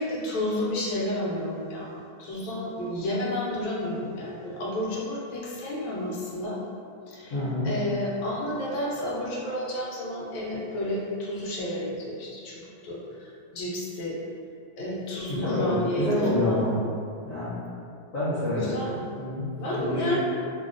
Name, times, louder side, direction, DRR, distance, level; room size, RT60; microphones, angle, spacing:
voice 1, 0.0-6.6 7.1-7.3 7.6-12.6 12.8-13.0 13.5-14.1 14.8-16.1 16.4-16.6 18.5-19.0 19.6-20.2, left 1 dB, 75° left, -5 dB, 1.2 m, -31 dB
voice 2, 7.3-7.7 15.3-16.8 17.2-17.6 18.1-18.7 19.2-20.1, left 1 dB, 55° left, -11 dB, 0.9 m, -27 dB
3.2 x 2.2 x 2.4 m, 2.5 s
omnidirectional pair, 2.2 m